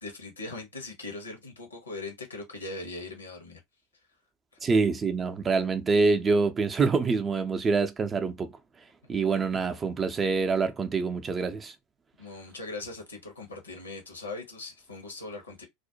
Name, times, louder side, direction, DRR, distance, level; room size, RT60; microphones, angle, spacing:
voice 1, 0.0-3.6 9.0-9.1 12.2-15.7, left 3 dB, 85° left, 0.8 m, -40 dB
voice 2, 4.6-8.5 9.1-11.7, right 4 dB, 25° right, 0.5 m, -26 dB
2.4 x 2.1 x 2.7 m
figure-of-eight pair, 80°, 0 cm